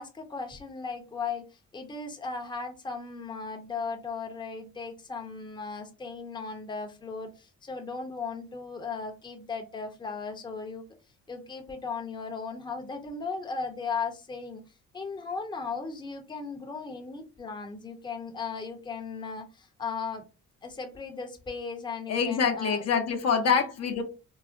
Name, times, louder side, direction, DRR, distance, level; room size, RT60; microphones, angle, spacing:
voice 1, 0.0-10.9 11.3-14.6 14.9-20.2 20.6-22.8 23.4-23.6, left 4 dB, 15° left, 0.6 m, -37 dB
voice 2, 22.1-24.0, left 6 dB, 55° left, 0.7 m, -25 dB
3.9 x 2.0 x 2.4 m
cardioid pair, 90°, 30 cm